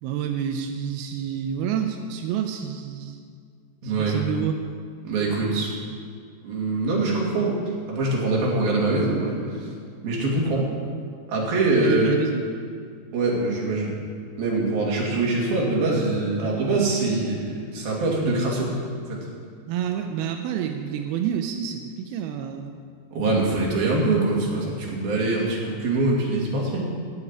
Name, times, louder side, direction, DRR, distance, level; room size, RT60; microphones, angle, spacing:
voice 1, 0.0-3.2 3.8-4.6 10.5-10.6 11.7-12.4 19.7-22.7, right 8 dB, 80° right, 4 dB, 2.3 m, -28 dB
voice 2, 3.8-4.2 5.0-5.7 6.4-7.6 7.9-9.7 10.0-10.7 11.3-12.1 13.1-13.9 14.4-18.8 19.1-19.3 23.1-26.9, right 2 dB, 60° right, -3 dB, 4.2 m, -23 dB
13.0 x 7.3 x 9.7 m, 2.1 s
omnidirectional pair, 5.1 m